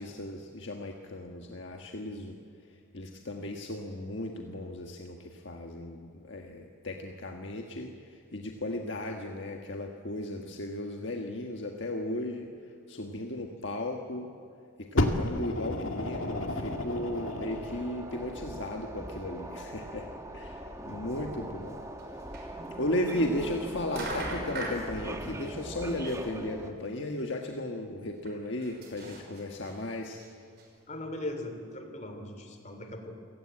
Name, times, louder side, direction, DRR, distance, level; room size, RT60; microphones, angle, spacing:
voice 1, 0.0-2.4 2.9-12.5 12.9-14.3 14.8-20.1 20.3-21.8 22.8-30.2, left 1 dB, 60° left, 2 dB, 1.5 m, -35 dB
Fire, 15.0-17.8 18.6-18.7, left 1 dB, 75° left, 2.0 m, -31 dB
sound 1, 16.0-26.7, right 1 dB, 15° right, 1.5 m, -41 dB
voice 2, 20.9-21.5 30.9-33.2, left 1 dB, 35° left, 6 dB, 3.1 m, -40 dB
sound 2, 22.0-22.1 22.3-22.4 23.5-23.6 23.9-24.8 26.4-26.5 26.8-26.9 27.2-27.3 28.3-29.7 30.2-30.3 30.6-30.7, right 2 dB, 50° right, 5.8 m, -38 dB
28.5 x 17.5 x 8.9 m, 2.3 s
head